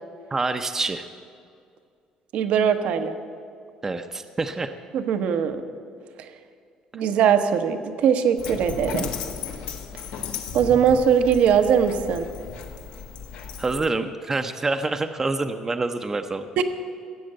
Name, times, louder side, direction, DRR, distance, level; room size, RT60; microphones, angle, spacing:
voice 1, 0.3-1.1 3.8-4.7 13.6-16.5, right 3 dB, 20° right, 7 dB, 0.6 m, -26 dB
voice 2, 2.3-3.2 4.9-5.6 6.2-6.3 6.9-9.1 10.5-12.3 16.6-16.7, right 7 dB, 70° right, 9 dB, 1.0 m, -20 dB
Dog, 8.4-13.9, left 6 dB, 85° left, 1.3 m, -35 dB
16.0 x 7.8 x 7.6 m, 2.3 s
cardioid pair, 110°, 2 cm